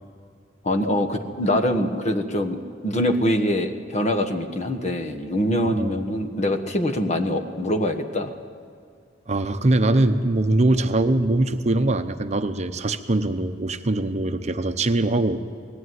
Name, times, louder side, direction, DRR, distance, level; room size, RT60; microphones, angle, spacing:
voice 1, 0.6-8.3, left 1 dB, 40° left, 4 dB, 1.4 m, -24 dB
voice 2, 9.3-15.4, right 2 dB, 40° right, 8 dB, 0.8 m, -22 dB
19.5 x 15.5 x 9.5 m, 2.3 s
head